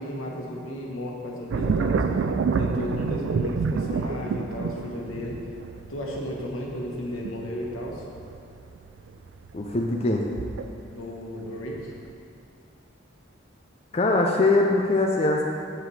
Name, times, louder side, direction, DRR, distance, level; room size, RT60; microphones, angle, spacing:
voice 1, 0.0-2.0 2.6-5.4 5.9-8.0 10.9-11.9, left 1 dB, 90° left, -2 dB, 1.2 m, -34 dB
sound 1, 1.5-11.1 11.5-12.1, right 5 dB, 65° right, 0.3 m, -28 dB
voice 2, 9.5-10.3 13.9-15.4, left 2 dB, 30° left, 0 dB, 0.4 m, -22 dB
7.5 x 7.2 x 3.3 m, 2.5 s
head